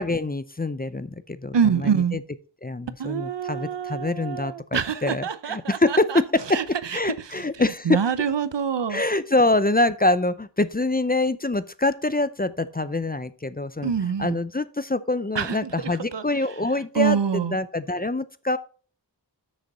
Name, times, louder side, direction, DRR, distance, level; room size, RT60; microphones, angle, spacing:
voice 1, 0.0-2.2 2.6-6.6 6.9-8.0 8.9-13.9 14.2-18.6, left 2 dB, 20° left, 0.5 m, -25 dB
voice 2, 1.5-2.2 3.0-6.2 6.5-9.0 13.8-14.4 15.3-16.2 16.9-17.6, right 7 dB, 75° right, 0.7 m, -26 dB
7.7 x 6.6 x 4.2 m
wide cardioid pair, 45°, 43 cm